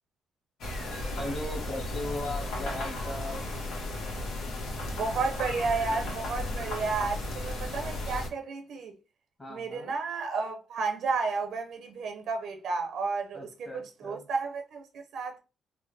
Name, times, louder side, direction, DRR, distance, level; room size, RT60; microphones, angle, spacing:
sound 1, 0.6-8.3, left 2 dB, 75° left, 1.0 m, -35 dB
voice 1, 1.2-3.5 9.4-9.9 13.3-14.3, left 1 dB, 20° left, 1.3 m, -38 dB
voice 2, 5.0-9.0 9.5-15.4, right 4 dB, 70° right, 0.6 m, -32 dB
3.4 x 2.0 x 3.2 m
cardioid pair, 90°, 0 cm